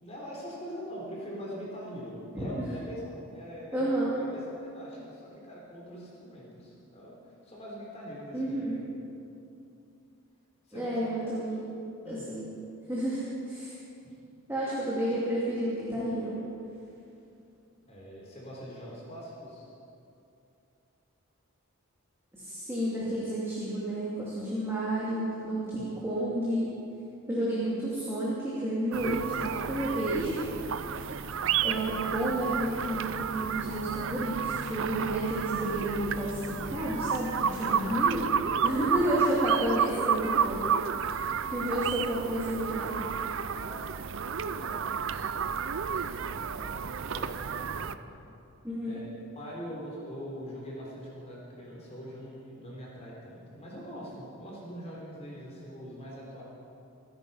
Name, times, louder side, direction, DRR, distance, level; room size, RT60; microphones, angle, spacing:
voice 1, 0.0-3.9 4.2-7.2 7.4-8.7 10.7-11.1 12.0-12.2 14.0-14.1 17.9-19.7 25.7-26.0 37.6-37.9 38.8-39.1 43.5-43.8 44.3-48.0 48.8-56.4, equal, 30° left, -4 dB, 3.7 m, -43 dB
voice 2, 3.7-4.1 8.3-8.7 10.7-11.7 12.0-12.5 12.9-13.7 14.5-16.4 22.3-26.7 27.3-30.4 30.9-31.1 31.6-38.3 38.6-40.6 41.0-43.0 48.6-49.0, right 1 dB, 10° right, -8 dB, 2.7 m, -31 dB
sound 1, 28.9-48.0, right 7 dB, 60° right, 0.5 m, -31 dB
26.0 x 9.4 x 5.7 m, 2.6 s
head